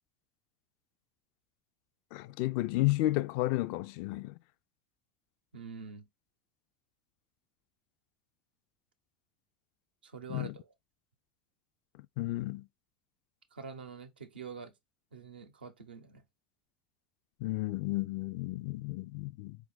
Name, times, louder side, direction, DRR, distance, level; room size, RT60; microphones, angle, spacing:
voice 1, 2.1-4.4 10.3-10.5 12.2-12.7 17.4-19.6, left 18 dB, 60° left, 0.3 m, -32 dB
voice 2, 5.5-6.1 10.0-10.7 13.5-14.7 15.1-16.2, right 5 dB, 85° right, 0.7 m, -46 dB
4.4 x 2.4 x 3.8 m
hypercardioid pair, 80°, 5 cm